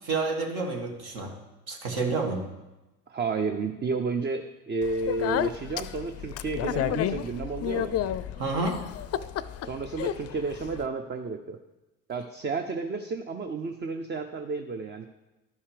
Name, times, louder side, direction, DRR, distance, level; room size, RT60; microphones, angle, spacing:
voice 1, 0.0-1.3 1.7-2.4 8.4-8.8, right 3 dB, 60° right, 2 dB, 1.9 m, -29 dB
voice 2, 3.1-8.0 9.6-11.6 12.1-15.1, right 4 dB, 25° right, 7 dB, 0.7 m, -31 dB
Speech, 4.8-10.9, left 11 dB, 40° left, 0.5 m, -31 dB
11.5 x 5.5 x 5.0 m, 1.0 s
hypercardioid pair, 55°, 40 cm